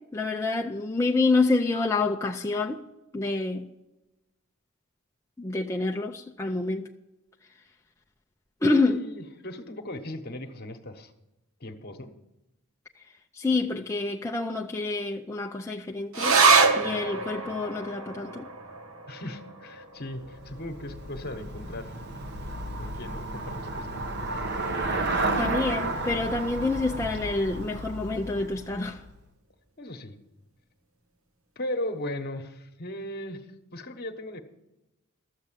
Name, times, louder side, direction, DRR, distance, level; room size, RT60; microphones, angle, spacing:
voice 1, 0.1-2.8 3.1-3.6 5.4-6.9 8.6-9.0 13.4-16.3 16.7-18.5 25.3-29.0, left 3 dB, 15° left, 0.5 m, -27 dB
voice 2, 8.9-11.1 11.6-12.1 19.1-21.9 22.8-24.0 29.8-30.2 31.6-33.5 33.7-34.4, left 1 dB, 45° left, 1.2 m, -37 dB
sound 1, 16.1-22.9 23.2-23.3 23.7-24.3 24.9-25.0, right 4 dB, 75° right, 1.2 m, -27 dB
Traffic noise roadway noise / Bicycle, 20.1-29.3, right 2 dB, 50° right, 1.0 m, -32 dB
13.0 x 7.6 x 7.5 m
head